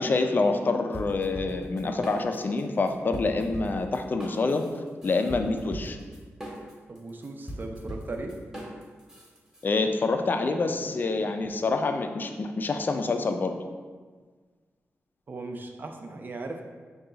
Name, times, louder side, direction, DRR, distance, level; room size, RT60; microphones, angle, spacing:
voice 1, 0.0-6.0 9.6-13.5, left 3 dB, 40° left, 6 dB, 0.4 m, -27 dB
sound 1, 0.9-2.6 2.9-9.6, equal, 10° right, 0.9 m, -40 dB
voice 2, 6.9-8.3 15.3-16.6, right 2 dB, 40° right, 3 dB, 0.5 m, -37 dB
5.6 x 2.3 x 3.8 m, 1.5 s
wide cardioid pair, 120°, 5 cm